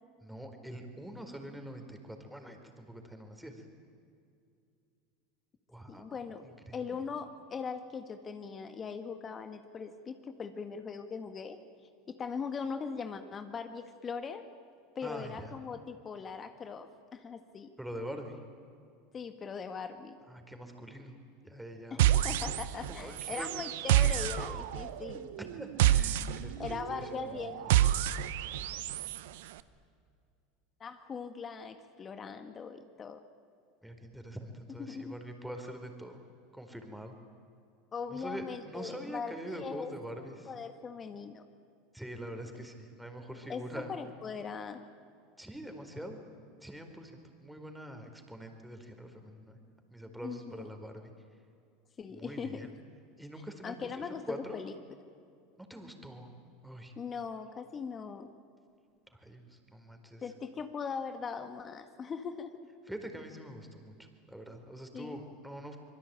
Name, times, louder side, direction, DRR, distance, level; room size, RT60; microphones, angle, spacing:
voice 1, 0.2-3.7 5.7-7.0 15.0-15.5 17.8-18.4 20.3-21.2 21.4-22.2 22.9-23.5 25.4-28.0 33.8-36.2 36.5-37.2 38.1-40.5 41.9-43.9 45.4-46.2 46.6-49.6 49.9-51.1 52.1-52.7 53.2-54.6 55.6-56.3 56.6-56.9 59.1-60.3 62.9-65.8, right 1 dB, 5° right, 5 dB, 4.4 m, -45 dB
voice 2, 5.9-6.4 6.7-11.6 12.1-14.4 14.9-17.7 19.1-20.2 21.9-25.3 26.6-27.6 30.8-33.2 34.9-35.1 37.9-39.9 40.5-41.4 43.5-43.6 43.9-44.8 50.2-50.6 52.0-52.6 53.6-54.7 56.9-58.3 60.2-62.7 64.9-65.2, left 5 dB, 30° left, 8 dB, 1.7 m, -40 dB
sound 1, 22.0-22.9 23.2-29.2, right 13 dB, 70° right, 0.9 m, -28 dB
25.5 x 22.5 x 9.0 m, 2.5 s
hypercardioid pair, 85°, 0 cm